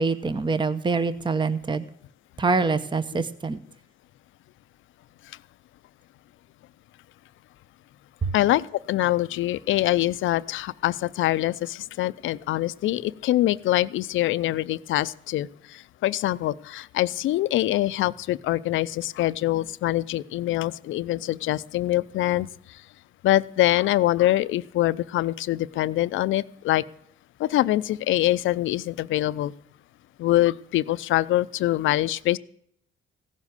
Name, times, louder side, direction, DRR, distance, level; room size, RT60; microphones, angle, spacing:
voice 1, 0.0-1.9 2.4-3.6 8.2-8.3, right 4 dB, 25° right, 12 dB, 0.9 m, -25 dB
voice 2, 8.3-22.5 23.2-26.8 27.4-29.5 30.2-32.4, left 15 dB, 80° left, 17 dB, 0.5 m, -24 dB
16.0 x 7.3 x 8.1 m, 0.69 s
cardioid pair, 90°, 20 cm